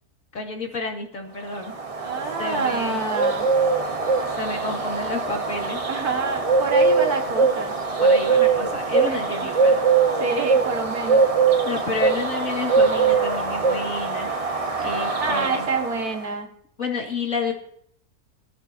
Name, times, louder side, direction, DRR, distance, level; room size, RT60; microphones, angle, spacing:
voice 1, 0.3-1.8 2.4-3.0 4.3-5.8 8.0-9.8 11.7-14.3 14.8-15.7 16.8-17.5, left 3 dB, 55° left, 1 dB, 2.7 m, -30 dB
sound 1, 1.5-16.2, right 4 dB, 25° right, 0.9 m, -22 dB
voice 2, 2.0-3.5 5.9-7.7 9.1-9.2 10.2-11.3 15.2-16.5, right 4 dB, 75° right, 4 dB, 2.1 m, -27 dB
19.5 x 12.5 x 2.8 m, 0.67 s
omnidirectional pair, 1.6 m